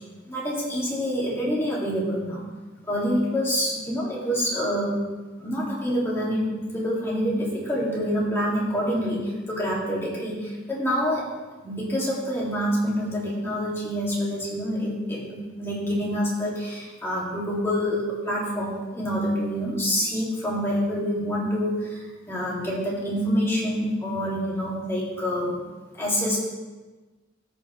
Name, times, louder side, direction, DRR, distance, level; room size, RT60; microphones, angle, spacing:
voice 1, 0.3-2.4 2.9-4.9 5.4-9.2 9.5-11.2 11.6-25.6 25.9-26.4, equal, 15° left, -6 dB, 2.2 m, -26 dB
14.5 x 5.0 x 3.1 m, 1.2 s
head